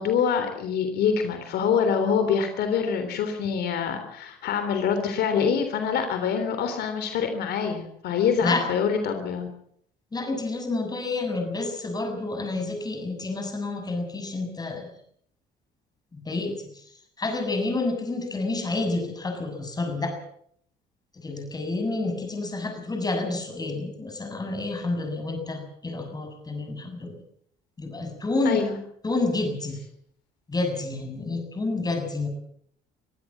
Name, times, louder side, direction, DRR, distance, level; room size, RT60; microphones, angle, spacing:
voice 1, 0.0-9.5 28.5-28.8, left 6 dB, 75° left, 7 dB, 3.4 m, -25 dB
voice 2, 10.1-14.9 16.1-20.1 21.1-27.1 27.8-28.6 29.0-29.8 30.5-32.3, left 2 dB, 25° left, 5 dB, 7.0 m, -29 dB
23.5 x 15.5 x 7.5 m, 0.67 s
cardioid pair, 110°, 17 cm